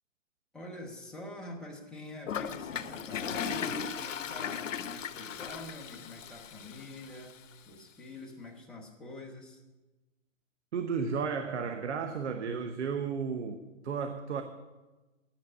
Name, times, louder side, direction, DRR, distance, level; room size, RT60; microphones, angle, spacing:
voice 1, 0.5-9.6, left 2 dB, ahead, -2 dB, 0.5 m, -46 dB
Toilet flush, 2.3-7.3, left 7 dB, 70° left, 0.9 m, -37 dB
voice 2, 10.7-14.4, right 6 dB, 60° right, 7 dB, 1.2 m, -33 dB
10.5 x 9.0 x 9.6 m, 1.2 s
hypercardioid pair, 155°, 39 cm